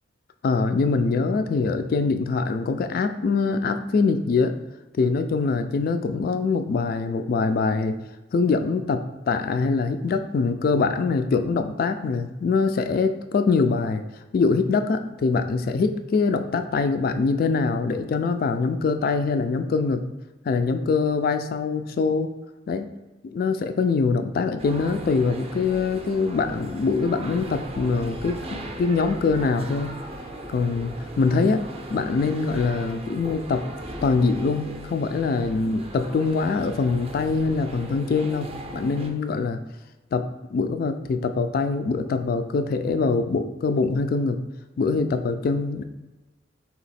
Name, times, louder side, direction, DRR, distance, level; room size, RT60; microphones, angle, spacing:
voice 1, 0.4-4.6 4.9-8.0 8.3-14.0 14.3-20.0 20.4-22.3 22.7-22.9 23.2-30.0 30.5-31.6 31.9-33.6 34.0-39.6 40.1-40.2 40.5-44.4 44.8-45.8, left 4 dB, 50° left, 7 dB, 0.3 m, -23 dB
sound 1, 24.6-39.1, right 1 dB, 30° right, 0.5 m, -38 dB
3.9 x 2.9 x 4.2 m, 1.1 s
head